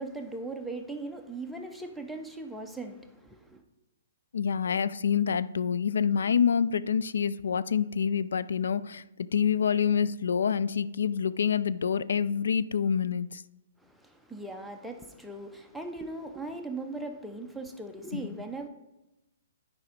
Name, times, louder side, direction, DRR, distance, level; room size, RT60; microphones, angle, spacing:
voice 1, 0.0-3.6 13.8-18.7, right 2 dB, ahead, 3 dB, 0.6 m, -39 dB
voice 2, 4.3-9.0 9.3-13.4 18.1-18.3, left 7 dB, 85° left, 16 dB, 0.3 m, -27 dB
9.4 x 5.1 x 5.0 m, 0.96 s
hypercardioid pair, 165°, 0 cm